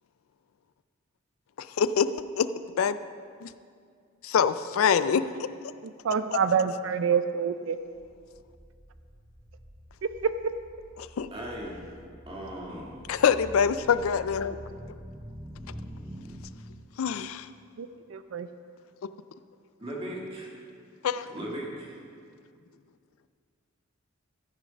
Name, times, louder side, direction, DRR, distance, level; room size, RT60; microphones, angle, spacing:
voice 1, 1.6-2.1 2.4-2.5 2.8-3.0 3.4-3.5 4.2-5.5 11.0-11.3 13.1-14.6 17.0-17.5 21.0-21.3, left 7 dB, 85° left, 14 dB, 0.4 m, -25 dB
voice 2, 6.0-7.8 10.2-10.3 17.8-18.5, right 7 dB, 70° right, 11 dB, 0.4 m, -26 dB
sound 1, 7.9-16.4, equal, 10° right, 0.7 m, -46 dB
voice 3, 11.3-11.8 12.3-13.0 19.8-20.5 21.3-22.0, right 1 dB, 25° right, -3 dB, 1.8 m, -37 dB
13.5 x 6.6 x 5.2 m, 2.2 s
head